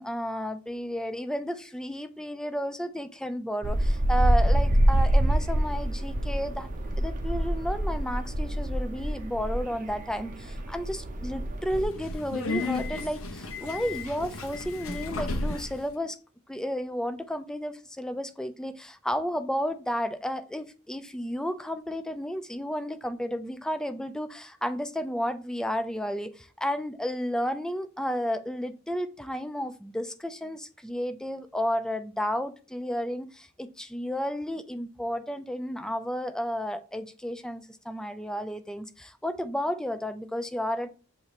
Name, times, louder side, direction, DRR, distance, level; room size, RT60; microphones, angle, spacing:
voice 1, 0.0-6.7 7.0-16.2 16.5-40.9, equal, 5° left, 9 dB, 0.3 m, -32 dB
sound 1, 3.6-11.8, right 1 dB, 40° right, 0.6 m, -26 dB
Subway metro underground, 11.6-15.9, left 2 dB, 75° left, 0.8 m, -33 dB
6.6 x 2.7 x 3.0 m, 0.36 s
head